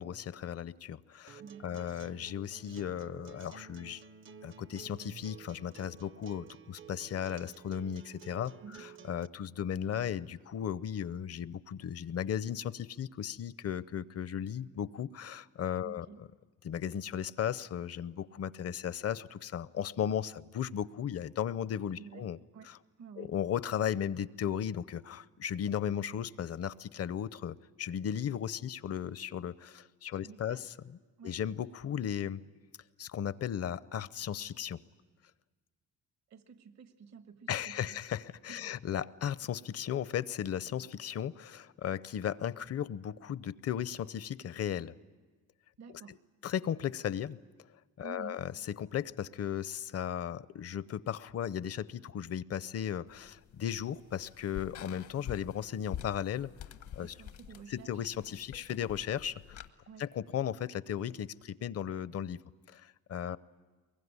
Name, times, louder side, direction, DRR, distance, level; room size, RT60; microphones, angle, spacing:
voice 1, 0.0-4.0 4.4-8.5 8.8-16.1 16.6-22.4 22.7-22.8 23.2-31.0 31.2-32.4 33.0-34.8 37.5-44.9 46.1-46.2 46.4-47.4 48.0-56.5 56.9-57.1 57.7-59.6 60.0-62.4 62.7-63.4, left 9 dB, 55° left, 17 dB, 0.7 m, -36 dB
Acoustic guitar, 1.3-9.3, right 7 dB, 40° right, 0.7 m, -52 dB
voice 2, 1.4-1.9 8.6-8.9 9.6-9.8 15.8-16.2 21.9-22.3 22.5-22.7 23.0-23.4 30.1-30.7 31.2-31.4 36.3-38.0 38.5-38.8 45.8-46.2 48.0-48.5 57.0-58.1 59.9-60.0 63.2-63.4, right 6 dB, 65° right, 9 dB, 1.4 m, -51 dB
sound 1, 53.1-59.7, left 10 dB, 75° left, 1.2 m, -47 dB
23.5 x 22.0 x 9.6 m, 1.4 s
cardioid pair, 90°, 30 cm